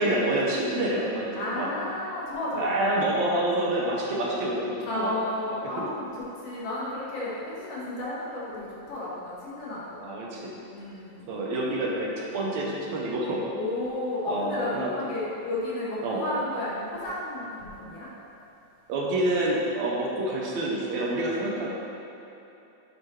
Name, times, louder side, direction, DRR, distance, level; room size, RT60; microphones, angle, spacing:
voice 1, 0.0-1.7 2.5-5.1 5.8-5.9 10.0-10.5 11.3-13.4 14.3-14.9 16.0-16.2 18.9-21.7, right 1 dB, 75° right, -3 dB, 2.1 m, -27 dB
voice 2, 1.3-2.9 4.9-10.0 10.7-11.3 13.5-18.1 21.4-21.7, left 1 dB, 65° left, -7 dB, 1.9 m, -32 dB
8.7 x 4.4 x 3.2 m, 2.9 s
omnidirectional pair, 3.3 m